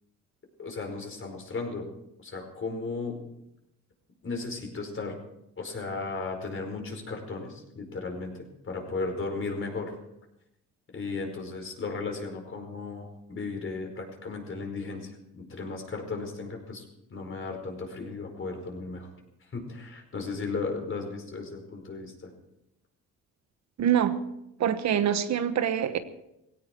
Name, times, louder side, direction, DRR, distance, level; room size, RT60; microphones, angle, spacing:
voice 1, 0.6-1.9 2.2-3.2 4.2-5.2 5.6-9.9 10.9-16.8 17.1-19.1 19.5-22.3, left 3 dB, 45° left, 3 dB, 4.9 m, -35 dB
voice 2, 23.8-24.2 24.6-26.0, right 9 dB, 65° right, 10 dB, 1.2 m, -25 dB
17.5 x 17.0 x 4.5 m, 0.84 s
cardioid pair, 90°, 30 cm